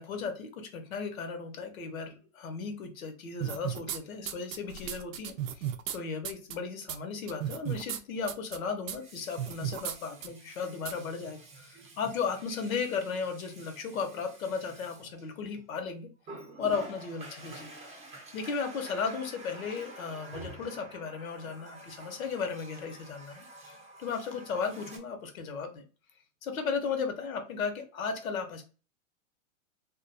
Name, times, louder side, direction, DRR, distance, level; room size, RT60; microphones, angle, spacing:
voice 1, 0.0-16.1 16.6-17.8 18.3-23.5 24.0-25.8 26.4-28.6, left 5 dB, 85° left, 6 dB, 0.9 m, -35 dB
sound 1, 3.4-4.0 4.3-6.0 6.2-6.5 6.9-7.0 7.3-8.0 8.3-8.6 8.9-9.0 9.4-10.0 10.2-10.3 10.9-11.0, right 10 dB, 70° right, 0.5 m, -34 dB
Water tap faucet, 5.3-5.4 8.8-15.7 16.2-25.0, right 2 dB, 15° right, 0.6 m, -49 dB
2.5 x 2.3 x 2.5 m, 0.35 s
hypercardioid pair, 110°, 41 cm